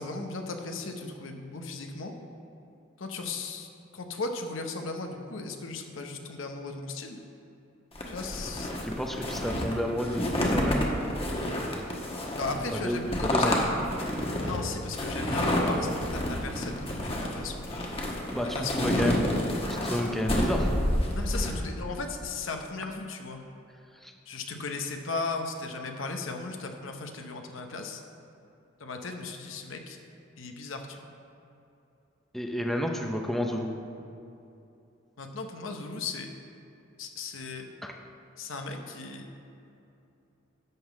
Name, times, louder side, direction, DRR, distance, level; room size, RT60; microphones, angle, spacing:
voice 1, 0.0-2.1 3.0-7.2 8.1-8.7 12.4-13.6 14.4-17.9 18.5-18.9 21.1-23.4 24.3-28.0 28.8-30.0 30.4-31.1 35.2-36.3 37.0-37.7 38.4-39.3, left 3 dB, 80° left, 4 dB, 0.8 m, -37 dB
sound 1, 8.0-21.6, left 1 dB, 30° left, 1.1 m, -29 dB
voice 2, 8.8-10.9 12.8-13.6 18.3-18.5 18.8-19.3 19.7-20.7 21.3-21.5 24.0-24.1 32.3-33.7 37.8-37.9, equal, ahead, 2 dB, 0.6 m, -30 dB
11.0 x 3.8 x 7.2 m, 2.7 s
head